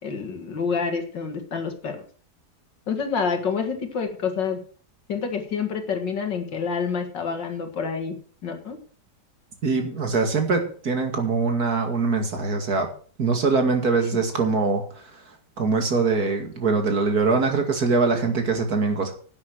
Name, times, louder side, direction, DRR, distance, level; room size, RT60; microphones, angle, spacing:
voice 1, 0.0-2.0 2.9-4.6 5.1-8.2 8.4-8.8, left 5 dB, 75° left, 6 dB, 2.6 m, -28 dB
voice 2, 9.6-12.9 13.2-15.1 15.6-19.1, right 4 dB, 55° right, 5 dB, 2.5 m, -23 dB
11.0 x 8.7 x 6.3 m, 0.43 s
omnidirectional pair, 2.0 m